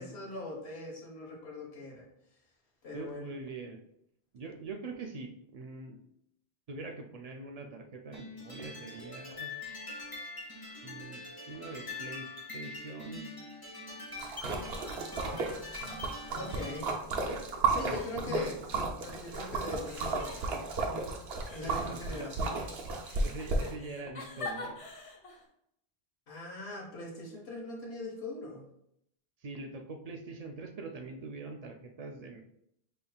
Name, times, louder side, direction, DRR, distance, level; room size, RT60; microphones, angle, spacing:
voice 1, 0.0-2.1 2.8-3.3 16.3-16.9 17.7-18.6 19.0-20.6 21.5-22.6 26.3-28.6, left 2 dB, 85° left, -3 dB, 1.4 m, -41 dB
voice 2, 2.9-3.8 4.3-6.0 6.7-9.5 10.8-13.3 15.3-15.6 16.3-16.7 17.8-18.6 21.6-22.3 23.2-24.8 29.4-32.4, right 3 dB, 55° right, 4 dB, 0.4 m, -43 dB
sound 1, 8.1-17.0, left 3 dB, 20° left, 1.1 m, -44 dB
Splash splatter, 14.2-23.7, right 3 dB, 75° right, 0.9 m, -34 dB
sound 2, 17.0-17.6 17.9-19.3 19.8-21.0 21.5-25.5, left 3 dB, 40° left, 0.6 m, -46 dB
5.3 x 3.3 x 2.3 m, 0.76 s
omnidirectional pair, 1.1 m